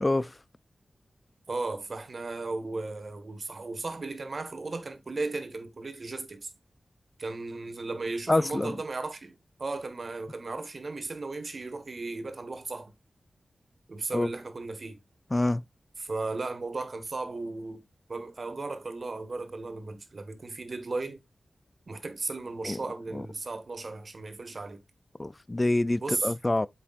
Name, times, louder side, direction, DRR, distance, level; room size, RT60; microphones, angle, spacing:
voice 1, 0.0-0.3 8.3-8.7 14.1-14.3 15.3-15.6 22.6-22.8 23.1-23.2 25.2-26.7, left 2 dB, 30° left, 0.4 m, -26 dB
voice 2, 1.5-6.5 7.2-12.9 13.9-15.0 16.0-17.8 18.1-21.2 21.9-24.8 26.0-26.3, right 3 dB, 60° right, 1.6 m, -35 dB
7.9 x 6.1 x 2.5 m
cardioid pair, 55°, 0 cm